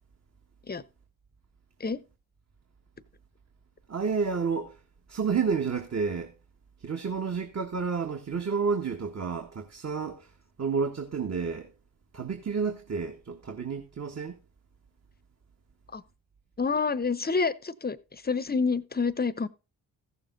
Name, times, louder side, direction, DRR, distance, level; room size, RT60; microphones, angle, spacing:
voice 1, 3.9-4.8 5.1-6.3 6.8-10.3 10.6-11.7 12.1-14.4, right 5 dB, 35° right, 1.5 m, -30 dB
voice 2, 16.6-19.5, left 4 dB, 20° left, 0.9 m, -28 dB
15.0 x 6.9 x 3.9 m
hypercardioid pair, 45°, 45 cm